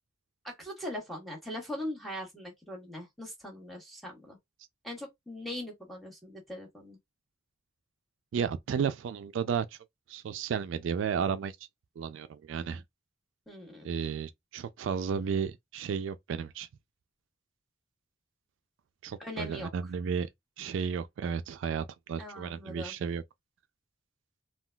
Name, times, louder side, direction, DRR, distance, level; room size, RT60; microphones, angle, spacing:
voice 1, 0.4-4.4 4.8-7.0 13.5-13.9 19.2-19.7 22.2-22.9, left 1 dB, ahead, 1.1 m, -41 dB
voice 2, 8.3-9.7 10.1-11.5 12.0-12.8 13.8-16.7 19.0-20.3 20.6-23.2, right 6 dB, 70° right, 0.3 m, -33 dB
3.7 x 2.3 x 2.2 m
head